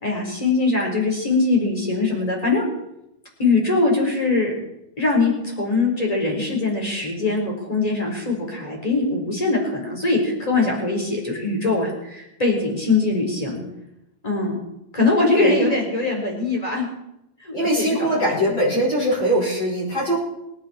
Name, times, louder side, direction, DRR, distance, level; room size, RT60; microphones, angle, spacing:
voice 1, 0.0-2.7 3.4-4.5 5.0-13.6 14.2-14.6 14.9-16.9 17.4-18.8, left 3 dB, 10° left, -1 dB, 3.5 m, -22 dB
voice 2, 15.3-15.8 17.5-20.2, right 1 dB, 25° left, -7 dB, 5.3 m, -21 dB
23.0 x 10.5 x 4.3 m, 0.85 s
omnidirectional pair, 5.0 m